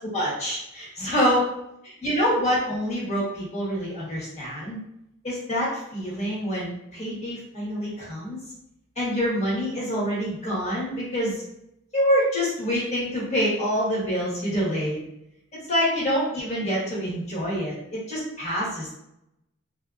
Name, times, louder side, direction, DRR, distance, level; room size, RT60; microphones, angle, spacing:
voice 1, 0.0-1.4 1.8-4.8 5.2-8.4 8.9-11.4 11.9-15.0 15.5-18.9, equal, 30° left, -7 dB, 1.2 m, -26 dB
3.9 x 2.6 x 2.4 m, 0.81 s
head